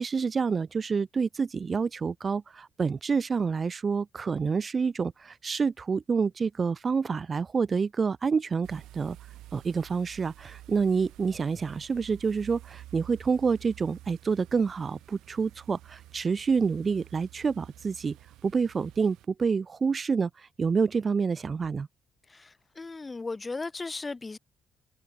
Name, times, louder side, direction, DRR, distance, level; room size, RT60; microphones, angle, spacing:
voice 1, 0.0-9.2 9.5-18.2 18.4-20.3 20.6-21.9, right 5 dB, 40° right, 0.9 m, -28 dB
sound 1, 8.6-19.3, right 15 dB, 90° right, 4.4 m, -50 dB
voice 2, 22.3-24.4, left 3 dB, 25° left, 0.9 m, -36 dB
cardioid pair, 90°, 0 cm